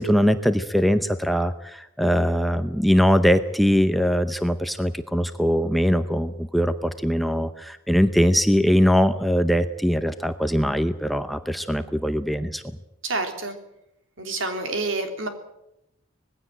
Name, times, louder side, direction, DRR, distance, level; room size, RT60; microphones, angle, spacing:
voice 1, 0.0-12.6, equal, ahead, 9 dB, 0.7 m, -21 dB
voice 2, 13.0-13.5 14.2-15.3, right 3 dB, 65° right, 5 dB, 3.4 m, -28 dB
20.0 x 16.0 x 9.2 m, 0.85 s
head